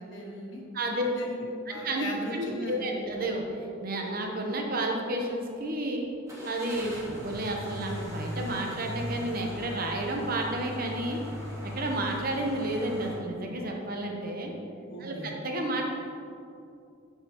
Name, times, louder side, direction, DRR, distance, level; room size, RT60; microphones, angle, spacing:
voice 1, 0.0-0.6 1.0-3.1 14.8-15.3, left 1 dB, 65° left, -2 dB, 1.4 m, -38 dB
voice 2, 0.7-1.1 1.7-2.0 2.3-6.1 6.4-11.2 11.6-14.5 15.0-15.8, right 1 dB, 45° right, 1 dB, 0.8 m, -31 dB
sound 1, 3.0-3.2 3.7-3.8 6.3-13.1, equal, 15° right, 1.5 m, -39 dB
10.0 x 5.7 x 2.9 m, 2.6 s
head